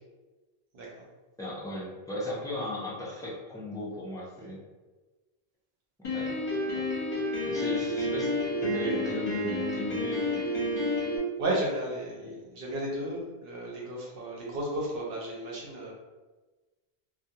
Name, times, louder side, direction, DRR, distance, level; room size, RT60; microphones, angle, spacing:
voice 1, 0.7-1.1 11.4-15.9, right 1 dB, 65° right, -3 dB, 0.9 m, -33 dB
voice 2, 1.4-4.6 6.1-6.3 6.7-6.9 7.4-8.3 8.6-10.4 12.2-12.3, equal, 5° left, -6 dB, 0.3 m, -36 dB
Piano, 6.0-11.2, left 1 dB, 45° left, 0.8 m, -30 dB
2.3 x 2.2 x 2.8 m, 1.2 s
omnidirectional pair, 1.0 m